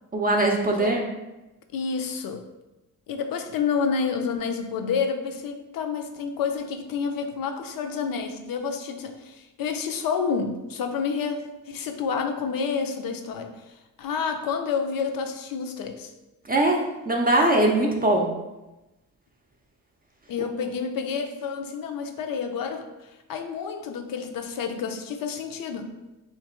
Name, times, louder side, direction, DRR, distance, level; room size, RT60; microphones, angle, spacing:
voice 1, 0.1-1.1 16.4-18.4, right 1 dB, 25° right, -1 dB, 0.5 m, -21 dB
voice 2, 1.7-2.4 3.1-13.6 14.0-16.1 20.3-25.9, left 6 dB, 65° left, 6 dB, 0.6 m, -29 dB
3.2 x 2.9 x 4.3 m, 1.0 s
cardioid pair, 95°, 37 cm